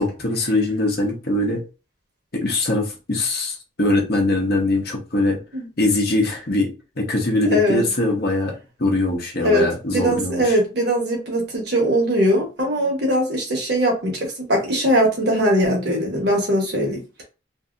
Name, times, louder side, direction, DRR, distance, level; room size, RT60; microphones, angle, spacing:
voice 1, 0.0-1.6 2.3-5.4 5.8-10.6, left 2 dB, 50° left, 0.9 m, -22 dB
voice 2, 7.5-7.8 9.4-9.7 9.9-17.0, equal, 55° right, 1.0 m, -20 dB
2.7 x 2.7 x 2.5 m
head